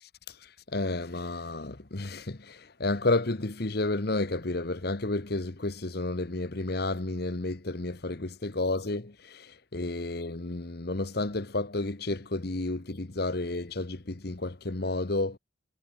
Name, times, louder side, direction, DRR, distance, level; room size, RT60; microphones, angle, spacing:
voice 1, 0.0-15.4, left 2 dB, 55° left, 1.2 m, -31 dB
head